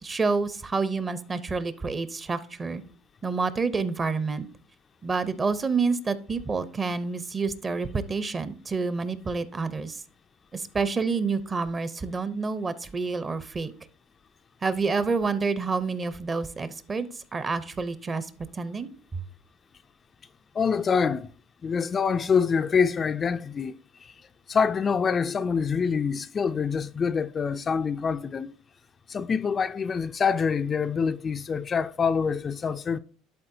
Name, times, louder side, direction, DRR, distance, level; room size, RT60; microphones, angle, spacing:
voice 1, 0.0-2.8 3.2-4.5 5.0-10.0 10.5-13.7 14.6-18.3 18.5-19.2, right 4 dB, 25° right, 0.7 m, -28 dB
voice 2, 20.5-21.3 21.6-24.1 24.5-28.5 29.1-33.0, left 6 dB, 30° left, 0.3 m, -26 dB
11.0 x 4.1 x 2.7 m
supercardioid pair, 95°, 0 cm